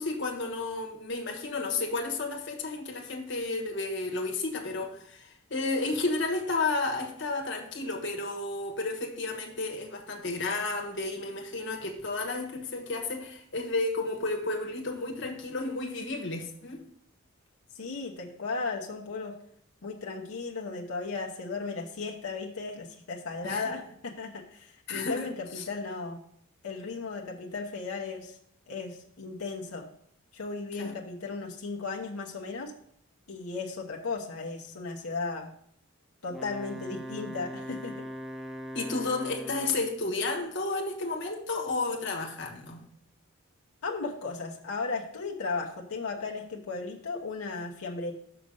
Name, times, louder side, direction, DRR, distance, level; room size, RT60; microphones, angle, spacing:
voice 1, 0.0-16.8 23.4-23.7 24.9-25.3 25.5-25.6 30.8-31.0 38.7-42.9, left 3 dB, 50° left, 2 dB, 1.4 m, -32 dB
voice 2, 17.8-19.4 19.8-26.2 26.6-28.4 28.7-29.9 30.3-32.7 33.3-35.5 36.2-38.0 43.8-48.1, left 4 dB, 85° left, 0 dB, 0.9 m, -35 dB
Wind instrument woodwind instrument, 36.3-40.0, equal, ahead, 0.3 m, -40 dB
6.3 x 5.9 x 5.3 m, 0.65 s
head